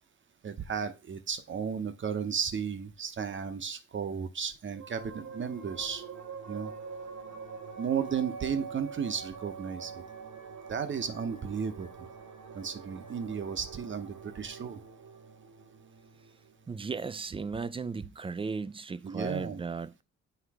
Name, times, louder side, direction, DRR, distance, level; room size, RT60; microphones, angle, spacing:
voice 1, 0.4-6.0 6.5-6.7 7.8-10.0 10.7-11.9 12.5-14.8 19.0-19.6, right 7 dB, 40° right, 0.9 m, -34 dB
sound 1, 4.7-17.6, right 5 dB, 75° right, 1.4 m, -45 dB
voice 2, 16.7-20.0, right 4 dB, 20° right, 0.4 m, -36 dB
8.1 x 3.2 x 4.8 m
cardioid pair, 90°, 30 cm